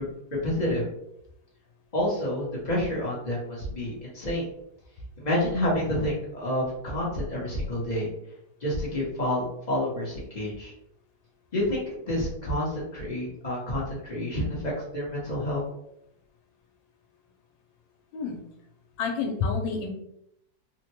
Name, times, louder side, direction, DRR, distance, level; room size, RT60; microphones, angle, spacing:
voice 1, 0.3-0.9 1.9-4.5 5.2-8.1 8.6-10.7 11.5-15.6, left 1 dB, 40° left, -5 dB, 0.7 m, -29 dB
voice 2, 19.0-19.9, left 5 dB, 85° left, 1 dB, 1.3 m, -28 dB
3.6 x 2.1 x 2.9 m, 0.75 s
omnidirectional pair, 2.0 m